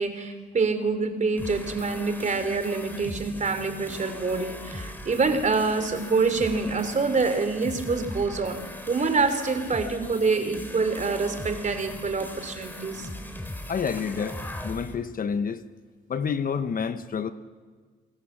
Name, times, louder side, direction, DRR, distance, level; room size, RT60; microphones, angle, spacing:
voice 1, 0.0-8.6 8.9-13.1, right 4 dB, 40° right, 8 dB, 3.5 m, -26 dB
sound 1, 1.4-14.9, left 1 dB, 10° left, 3.6 m, -39 dB
voice 2, 13.7-15.6 16.1-17.3, left 6 dB, 45° left, 11 dB, 1.2 m, -29 dB
28.0 x 21.0 x 7.5 m, 1.5 s
cardioid pair, 90°, 20 cm